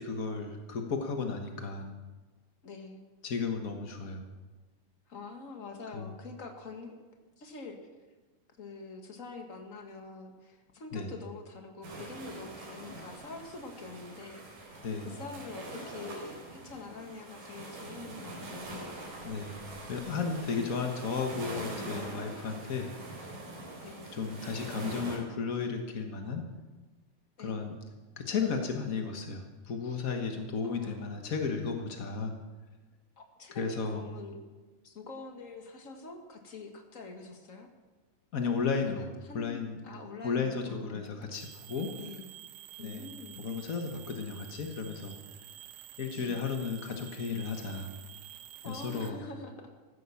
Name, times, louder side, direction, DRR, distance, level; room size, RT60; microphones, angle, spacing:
voice 1, 0.0-2.0 3.2-4.3 5.9-6.1 10.9-11.1 14.8-15.1 19.2-22.9 23.2-23.4 24.1-26.5 27.4-27.8 28.2-32.3 33.5-34.0 38.3-39.1 39.3-39.8 40.2-42.0 42.8-43.1 43.4-45.2 46.0-47.9 48.6-49.2, left 5 dB, 80° left, 4 dB, 0.7 m, -34 dB
voice 2, 2.6-3.0 5.1-7.0 7.4-7.8 8.6-18.9 23.8-24.1 27.4-27.6 30.6-30.9 33.2-34.4 34.8-37.7 38.8-41.1 42.0-42.3 42.8-43.4 46.2-46.4 48.6-49.5, left 3 dB, 35° left, 4 dB, 1.4 m, -45 dB
sound 1, 11.8-25.2, right 2 dB, 90° right, 5.3 m, -43 dB
sound 2, 41.1-49.1, right 12 dB, 75° right, 1.8 m, -49 dB
15.0 x 12.5 x 7.1 m, 1.3 s
omnidirectional pair, 3.7 m